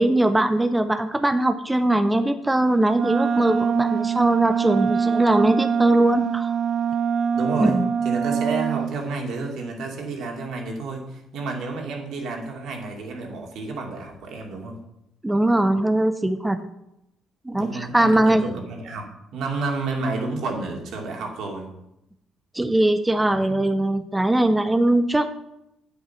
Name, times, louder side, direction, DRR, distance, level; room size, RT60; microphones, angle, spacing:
voice 1, 0.0-6.5 7.7-7.9 15.2-16.6 17.5-18.5 22.5-25.3, right 1 dB, 10° right, 9 dB, 0.6 m, -21 dB
Wind instrument woodwind instrument, 2.9-9.0, right 7 dB, 55° right, 0.4 m, -23 dB
voice 2, 7.3-7.8 8.0-14.8 17.5-21.7 23.3-23.6, right 3 dB, 75° right, 1 dB, 2.6 m, -30 dB
8.7 x 8.3 x 5.8 m, 0.84 s
cardioid pair, 95°, 0 cm